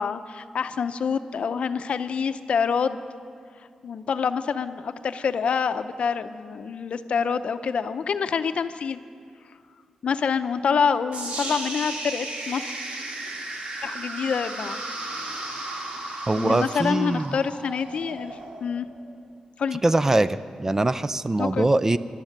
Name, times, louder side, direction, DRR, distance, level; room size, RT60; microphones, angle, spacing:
voice 1, 0.0-3.0 3.6-9.0 10.0-12.7 13.8-14.8 16.4-18.9 19.6-19.8 21.4-21.7, left 6 dB, 70° left, 10 dB, 0.6 m, -26 dB
sound 1, 11.1-19.2, right 2 dB, 80° right, 2.2 m, -35 dB
voice 2, 16.3-17.4 19.8-22.0, right 2 dB, 20° right, 14 dB, 0.4 m, -22 dB
17.5 x 12.0 x 6.6 m, 2.2 s
wide cardioid pair, 110°, 2 cm